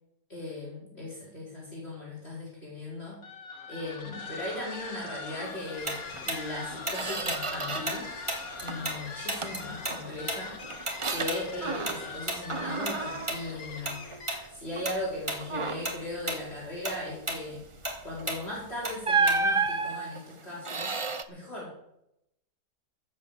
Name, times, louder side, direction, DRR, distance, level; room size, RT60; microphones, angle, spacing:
voice 1, 0.3-3.2 3.7-8.1 8.6-10.6 11.1-14.0 14.5-17.6 18.0-20.9 21.3-21.7, left 1 dB, 40° left, -5 dB, 5.3 m, -38 dB
sound 1, 3.2-14.6, left 4 dB, 60° left, 2.0 m, -42 dB
Tick-tock, 5.9-9.0 9.3-14.0 14.3-14.5 14.8-15.4 15.7-19.7, right 1 dB, 15° right, 3.0 m, -34 dB
Squeak, 6.1-6.3 6.6-8.1 8.4-9.0 9.4-12.2 12.5-14.3 14.8-15.0 15.4-16.0 18.1-18.3 19.0-21.2, right 4 dB, 35° right, 0.5 m, -32 dB
15.5 x 8.5 x 7.1 m, 0.80 s
omnidirectional pair, 1.7 m